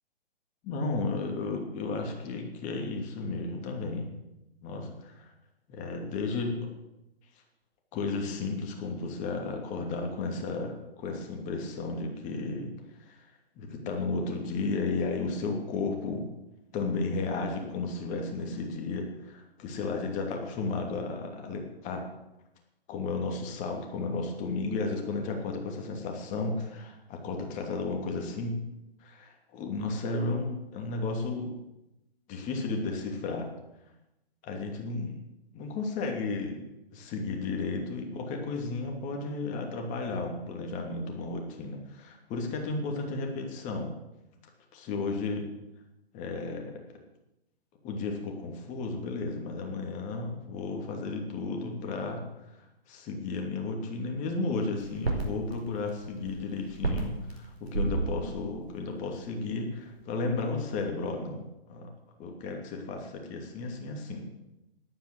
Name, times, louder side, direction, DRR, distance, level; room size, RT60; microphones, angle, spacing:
voice 1, 0.6-4.1 4.6-5.3 5.7-6.7 7.9-12.7 13.1-13.3 13.6-16.3 16.7-22.0 22.9-28.6 29.0-31.6 32.3-33.5 34.4-35.2 35.5-36.6 36.9-43.9 44.7-45.5 46.1-46.8 47.8-52.2 52.5-61.4 61.7-61.9 62.2-64.3, left 3 dB, 25° left, 2 dB, 2.7 m, -33 dB
sound 1, 54.8-59.5 60.0-60.1, right 3 dB, 85° right, 5.0 m, -34 dB
13.0 x 11.0 x 7.8 m, 0.92 s
figure-of-eight pair, 130°, 31 cm